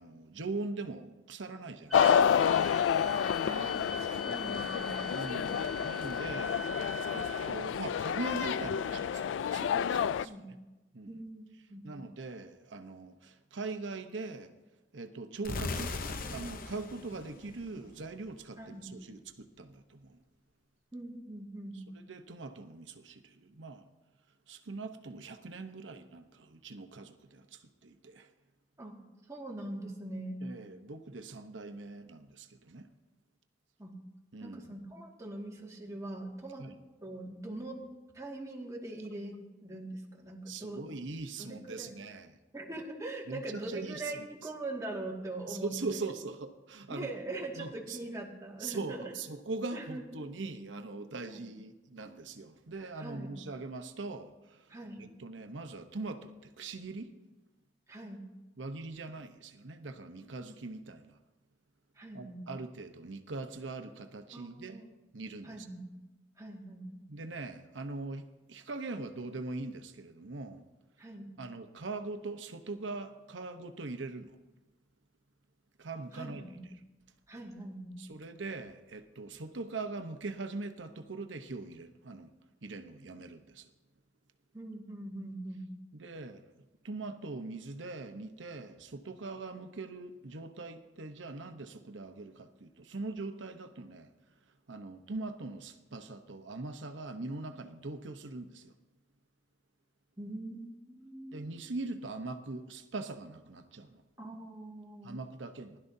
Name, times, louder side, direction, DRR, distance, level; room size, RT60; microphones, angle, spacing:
voice 1, 0.0-2.3 5.1-6.6 7.1-10.5 10.9-11.2 11.8-14.5 14.9-15.9 16.3-20.2 22.1-23.8 24.5-28.3 30.4-32.9 34.3-34.7 36.6-36.7 40.5-42.4 43.3-44.5 45.5-47.1 47.6-48.0 48.6-57.1 58.6-61.2 62.1-64.8 65.1-65.7 67.1-70.6 71.4-74.4 75.8-76.5 78.0-82.3 82.6-83.7 85.9-86.4 86.8-94.1 94.7-98.7 101.3-104.0 105.0-105.8, right 3 dB, 90° right, 0.9 m, -41 dB
sound 1, 1.9-10.2, left 8 dB, 80° left, 0.3 m, -29 dB
sound 2, 1.9-9.4, left 1 dB, ahead, 1.0 m, -43 dB
voice 2, 3.4-5.0 10.2-10.5 11.1-11.4 11.7-11.9 18.6-18.9 20.9-21.8 28.8-29.0 29.3-30.4 33.8-34.0 34.4-36.7 37.0-37.9 38.1-40.8 41.4-42.0 42.5-45.7 46.9-49.1 49.7-50.0 53.0-53.4 54.7-55.0 57.9-58.2 62.0-62.4 64.3-64.9 65.4-65.9 66.4-67.0 71.0-71.3 76.1-76.6 77.3-78.0 84.5-85.7 100.2-101.4 104.2-105.2, right 2 dB, 20° right, 2.0 m, -42 dB
sound 3, 15.4-18.3, left 3 dB, 50° left, 0.8 m, -39 dB
20.0 x 12.0 x 2.7 m
head